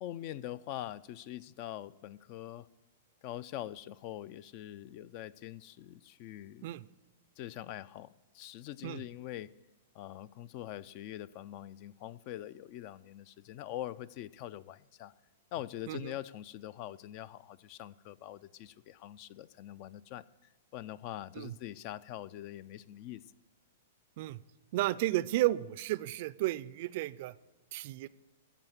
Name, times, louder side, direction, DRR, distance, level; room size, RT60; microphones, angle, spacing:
voice 1, 0.0-2.7 3.2-6.7 7.4-9.5 9.9-15.1 15.5-20.2 20.7-23.2, left 13 dB, 45° left, 19 dB, 0.4 m, -43 dB
voice 2, 24.7-27.3 27.7-28.1, right 16 dB, 55° right, 18 dB, 0.4 m, -33 dB
14.0 x 5.0 x 7.4 m, 1.2 s
hypercardioid pair, 125°, 0 cm